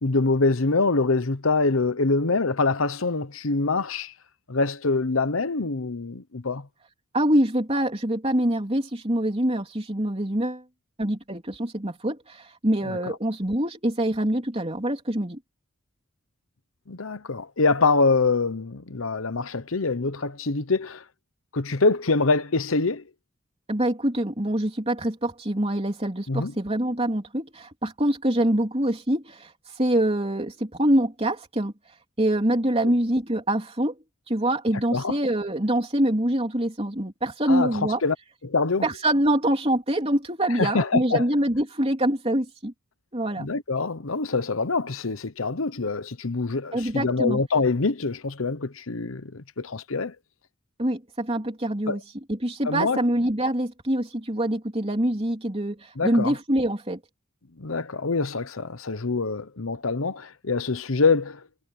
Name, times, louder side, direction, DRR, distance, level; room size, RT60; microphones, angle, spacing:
voice 1, 0.0-4.1 4.5-6.7 12.8-13.0 16.9-21.0 21.5-23.0 26.3-26.5 34.9-35.2 37.5-37.7 38.0-38.1 38.4-38.9 40.5-41.2 43.4-50.1 51.9-52.0 52.6-53.0 56.0-56.3 57.6-61.4, left 3 dB, 80° left, 1.0 m, -25 dB
voice 2, 7.1-10.6 11.0-15.4 23.7-31.7 32.2-33.9 34.3-38.0 38.8-42.7 43.1-43.5 46.7-47.4 50.8-52.0 52.3-57.0, right 1 dB, 30° right, 3.6 m, -25 dB
head